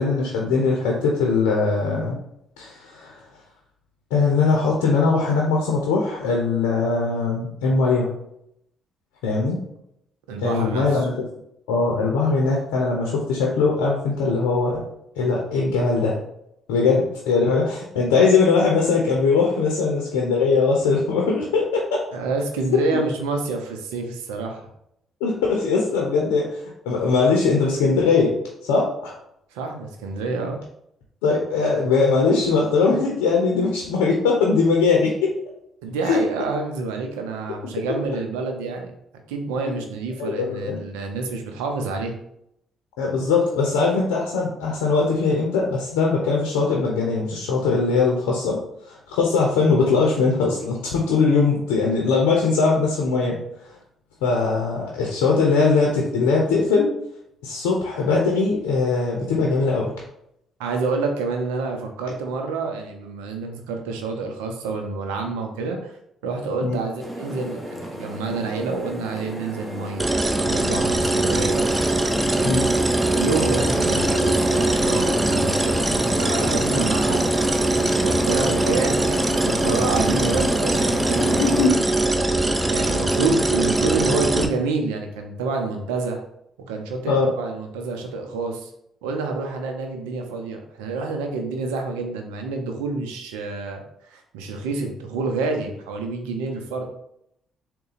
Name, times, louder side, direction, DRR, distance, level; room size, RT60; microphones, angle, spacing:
voice 1, 0.0-2.2 2.6-3.2 4.1-8.1 9.2-9.6 10.4-11.3 11.7-14.8 15.2-16.2 16.7-21.8 22.9-23.0 25.2-29.2 31.2-35.4 36.0-36.2 40.2-40.8 43.0-48.6 48.8-53.7 54.2-56.9 57.4-59.9 66.6-66.8 72.4-72.6 81.4-81.7 87.1-87.3, left 4 dB, 85° left, -1 dB, 0.6 m, -21 dB
voice 2, 10.3-11.0 22.1-24.7 29.5-30.6 35.8-38.9 39.3-42.1 60.6-65.9 66.2-70.1 70.4-71.9 73.1-75.8 76.2-77.2 78.0-81.4 82.7-86.2 86.7-88.7 89.0-93.8 94.1-96.8, right 3 dB, 85° right, 4 dB, 0.6 m, -28 dB
sound 1, 67.0-81.7, equal, 5° right, 1.1 m, -30 dB
sound 2, 70.0-84.5, right 2 dB, 20° right, 0.6 m, -22 dB
3.9 x 2.2 x 4.0 m, 0.77 s
hypercardioid pair, 55°, 0 cm